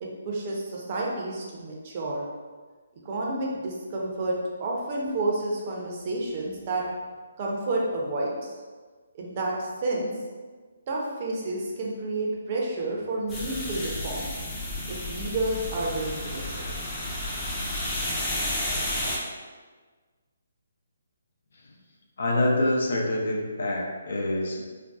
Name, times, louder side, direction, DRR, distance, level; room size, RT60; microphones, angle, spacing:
voice 1, 0.0-2.2 3.0-6.8 7.4-8.5 9.1-10.1 10.9-14.3 14.9-16.7, right 2 dB, 35° right, -2 dB, 0.5 m, -30 dB
sound 1, 13.3-19.2, left 1 dB, 15° left, 0.5 m, -31 dB
voice 2, 22.2-24.6, left 1 dB, 65° left, -1 dB, 0.5 m, -26 dB
2.6 x 2.2 x 2.2 m, 1.4 s
hypercardioid pair, 150°, 0 cm